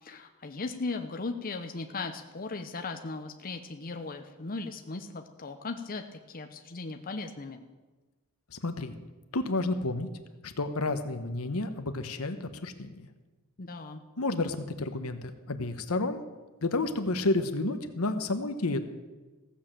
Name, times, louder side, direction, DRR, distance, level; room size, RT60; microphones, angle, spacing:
voice 1, 0.0-7.6 13.6-14.0, left 3 dB, 40° left, 5 dB, 0.8 m, -37 dB
voice 2, 8.5-9.0 9.3-10.1 10.4-13.1 14.2-16.2 16.6-18.8, left 2 dB, 75° left, 8 dB, 1.1 m, -30 dB
16.0 x 7.2 x 7.4 m, 1.2 s
head